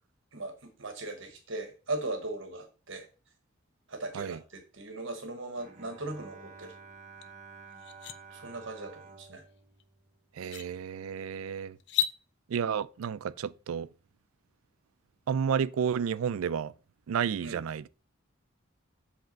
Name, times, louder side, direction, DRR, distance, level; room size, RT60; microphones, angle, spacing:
voice 1, 0.3-3.1 3.9-6.7 8.3-9.4 17.4-17.6, right 2 dB, 60° right, 1.0 m, -38 dB
Bowed string instrument, 5.6-10.9, right 5 dB, 35° right, 0.8 m, -51 dB
sound 1, 7.2-7.3 7.7-8.2 9.8-9.9 10.4-10.7 11.8-12.2, left 10 dB, 55° left, 0.5 m, -32 dB
voice 2, 10.4-11.8 12.5-13.9 15.3-16.7 17.1-17.8, right 7 dB, 80° right, 0.4 m, -31 dB
7.8 x 3.4 x 5.1 m
head